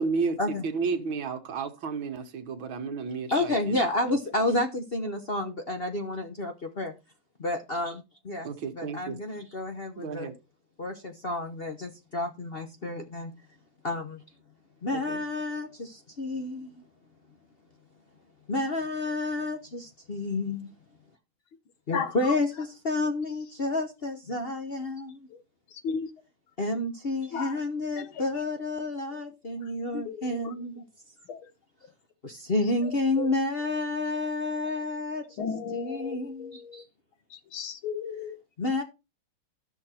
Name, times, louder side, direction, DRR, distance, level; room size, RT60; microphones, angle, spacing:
voice 1, 0.0-3.8 8.4-9.2 10.0-10.3 14.9-15.2, right 5 dB, 70° right, 2.0 m, -32 dB
voice 2, 3.3-6.9 7.4-8.5 8.8-10.3 10.8-13.3 13.8-14.2 14.8-16.8 18.5-20.7 21.9-25.3 26.6-30.8 32.2-35.5 35.7-36.8 38.6-38.8, left 2 dB, 40° left, 0.9 m, -30 dB
voice 3, 21.9-22.4 25.7-26.1 27.3-27.6 28.0-28.3 29.6-30.6 31.3-31.5 33.2-33.3 35.4-36.8 37.3-38.4, left 6 dB, 75° left, 2.0 m, -35 dB
13.0 x 6.2 x 4.3 m
omnidirectional pair, 2.3 m